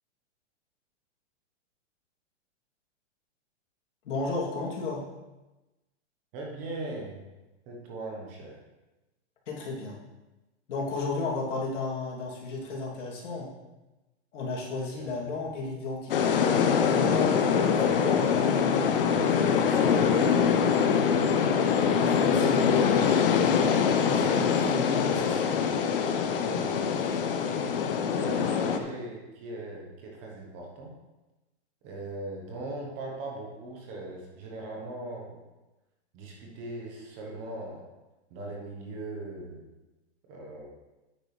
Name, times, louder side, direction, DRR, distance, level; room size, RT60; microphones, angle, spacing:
voice 1, 4.0-5.0 9.5-10.0 10.7-13.5 14.3-16.4 16.9-20.3 20.6-21.2 21.9-23.1 24.0-25.6, left 3 dB, 85° left, -3 dB, 2.9 m, -34 dB
voice 2, 6.3-7.2 7.7-8.6 15.0-15.3 26.4-26.7 28.2-30.9 31.8-35.4 36.1-37.9 38.3-39.6 40.3-40.7, right 2 dB, 20° right, -1 dB, 1.0 m, -39 dB
sound 1, 16.1-28.8, left 6 dB, 50° left, 0.8 m, -24 dB
9.4 x 8.9 x 3.3 m, 1.1 s
supercardioid pair, 180°, 36 cm